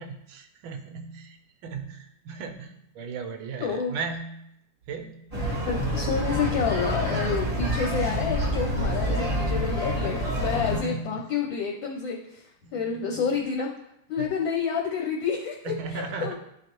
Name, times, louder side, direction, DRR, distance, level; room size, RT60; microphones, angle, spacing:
voice 1, 0.0-4.5 4.9-5.3 10.7-11.2 12.6-13.3 14.2-14.3 15.6-16.3, right 4 dB, 75° right, 5 dB, 1.4 m, -37 dB
voice 2, 3.6-4.0 5.7-13.7 14.1-16.3, left 6 dB, 70° left, 0 dB, 1.3 m, -29 dB
sound 1, 5.3-10.8, equal, 20° right, 1.0 m, -27 dB
10.5 x 3.9 x 3.0 m, 0.79 s
omnidirectional pair, 2.4 m